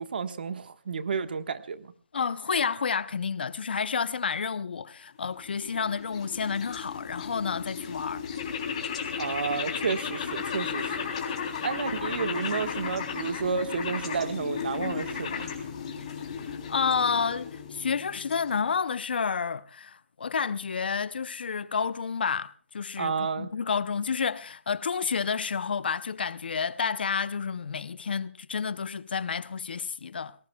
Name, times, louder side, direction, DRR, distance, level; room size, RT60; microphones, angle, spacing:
voice 1, 0.0-1.9 9.2-10.9 11.6-15.5 23.0-23.5, right 5 dB, 50° right, 1.4 m, -31 dB
voice 2, 2.1-8.2 16.0-30.4, left 6 dB, 50° left, 0.7 m, -30 dB
sound 1, 5.3-18.7, left 6 dB, 30° left, 3.3 m, -35 dB
28.5 x 19.5 x 2.3 m
hypercardioid pair, 170°, 7 cm